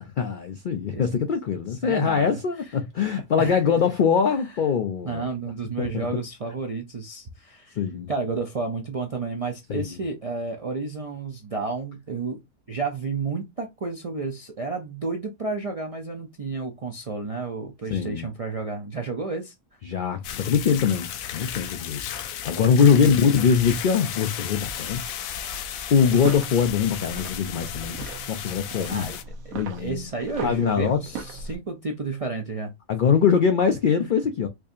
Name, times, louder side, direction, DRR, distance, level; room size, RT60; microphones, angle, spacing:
voice 1, 0.0-5.3 5.8-6.1 7.8-8.1 9.7-9.9 17.9-18.3 19.9-25.1 25.9-29.2 29.5-30.1 30.4-31.0 32.9-34.5, left 6 dB, 70° left, 0.4 m, -23 dB
voice 2, 1.8-2.4 3.4-3.6 4.4-4.5 5.0-7.8 8.1-12.4 12.7-19.5 22.8-23.2 28.9-29.1 29.4-32.7, right 4 dB, 55° right, 0.4 m, -31 dB
sound 1, 20.2-29.2, left 9 dB, 90° left, 1.0 m, -34 dB
sound 2, 26.0-31.6, right 5 dB, 80° right, 1.2 m, -39 dB
4.7 x 2.7 x 2.5 m
omnidirectional pair, 1.4 m